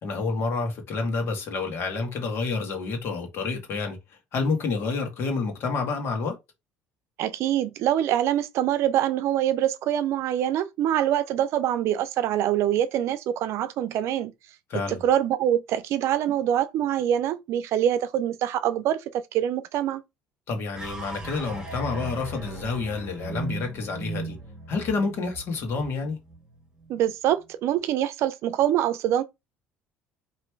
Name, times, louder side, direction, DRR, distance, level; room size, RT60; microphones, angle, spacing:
voice 1, 0.0-4.0 4.3-6.4 14.7-15.0 20.5-24.4 24.7-26.2, left 4 dB, 55° left, 1.7 m, -29 dB
voice 2, 7.2-14.3 14.7-19.0 19.3-20.0 26.9-29.2, right 11 dB, 65° right, 0.5 m, -24 dB
sound 1, 20.7-27.1, right 2 dB, 15° right, 1.5 m, -38 dB
3.1 x 3.0 x 4.6 m
cardioid pair, 115°, 5 cm